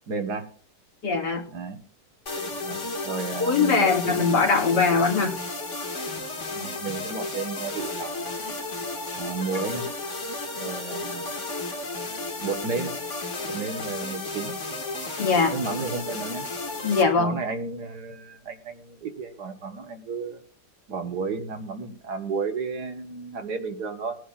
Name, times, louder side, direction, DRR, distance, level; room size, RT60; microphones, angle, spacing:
voice 1, 0.1-0.5 1.5-1.8 2.6-4.5 6.5-8.4 9.2-9.9 10.6-11.3 12.4-12.9 13.4-14.6 15.5-16.5 17.2-20.4 20.9-24.2, right 4 dB, 65° right, 6 dB, 1.8 m, -33 dB
voice 2, 1.0-1.4 3.4-5.3 15.2-15.5 16.8-17.3, left 4 dB, 70° left, 0 dB, 2.9 m, -21 dB
sound 1, 2.3-17.0, left 2 dB, 40° left, 2.2 m, -33 dB
21.0 x 10.0 x 2.4 m, 0.43 s
omnidirectional pair, 1.9 m